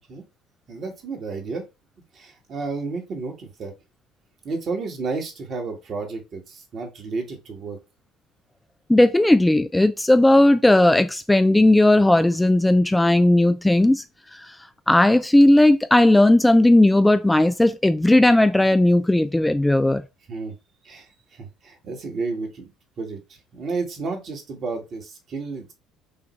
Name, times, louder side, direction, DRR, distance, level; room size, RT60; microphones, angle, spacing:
voice 1, 0.7-1.7 2.1-3.7 4.4-7.8 20.3-20.5 20.8-22.7 23.0-25.7, right 4 dB, 50° right, 1.6 m, -32 dB
voice 2, 8.9-14.0 14.3-14.6 14.9-20.0, left 1 dB, 10° left, 0.4 m, -16 dB
5.6 x 2.5 x 3.2 m
hypercardioid pair, 60°, 0 cm